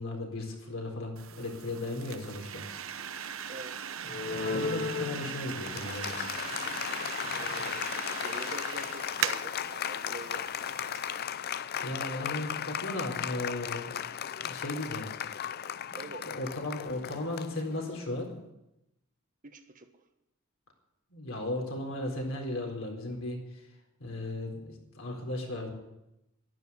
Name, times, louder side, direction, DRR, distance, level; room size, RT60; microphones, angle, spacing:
voice 1, 0.0-2.6 4.0-6.3 11.8-13.9 14.4-15.1 15.9-18.3 21.1-23.4 24.0-25.7, left 1 dB, 70° left, 1 dB, 4.2 m, -36 dB
sound 1, 1.2-11.2, right 8 dB, 70° right, 0.9 m, -39 dB
voice 2, 3.5-3.8 7.3-7.8 8.2-9.5 9.9-10.5 15.9-16.3 19.4-19.9, right 2 dB, 40° right, 6 dB, 1.4 m, -45 dB
Applause, 4.1-18.1, left 8 dB, 50° left, 0.5 m, -36 dB
12.0 x 11.5 x 9.9 m, 0.90 s
head